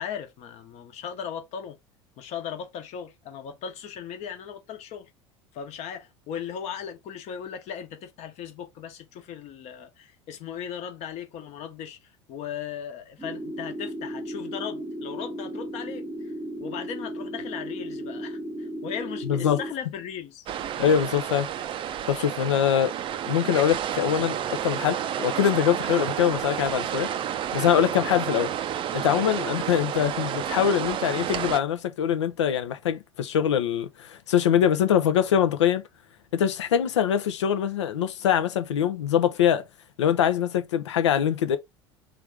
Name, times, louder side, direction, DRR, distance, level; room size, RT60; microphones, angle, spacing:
voice 1, 0.0-1.8 2.2-5.1 5.5-16.3 16.6-20.5 27.9-28.2, left 8 dB, 45° left, 1.1 m, -37 dB
sound 1, 13.2-19.7, equal, 10° right, 0.8 m, -35 dB
voice 2, 19.3-19.6 20.8-21.5 22.1-22.9 23.3-27.1 27.5-28.5 28.9-35.8 36.3-39.6 40.0-41.6, left 9 dB, 70° left, 0.6 m, -23 dB
sound 2, 20.5-31.6, right 10 dB, 35° right, 0.4 m, -30 dB
3.4 x 3.4 x 3.5 m
figure-of-eight pair, 70°, 15 cm